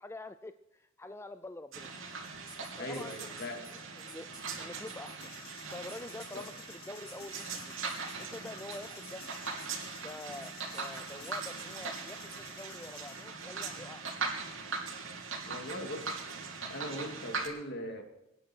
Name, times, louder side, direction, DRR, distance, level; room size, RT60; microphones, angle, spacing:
voice 1, 0.0-1.9 2.8-3.3 3.7-4.3 4.6-5.2 5.7-7.8 8.2-9.2 10.0-14.0, left 2 dB, 10° left, 10 dB, 0.4 m, -46 dB
sound 1, 1.7-17.5, right 4 dB, 65° right, 3.1 m, -40 dB
sound 2, 2.5-3.7 4.1-4.6 4.9-5.1 5.9-6.4 7.1-8.1 8.7-9.3 9.6-9.8 10.4-10.5 10.7-11.5, right 1 dB, 5° right, 3.9 m, -52 dB
voice 2, 2.8-3.7 6.3-6.5 15.4-16.2 16.7-18.0, left 1 dB, 50° left, 4 dB, 2.7 m, -40 dB
sound 3, 5.2-13.3, left 6 dB, 90° left, 3.3 m, -54 dB
23.5 x 10.5 x 4.5 m, 0.93 s
head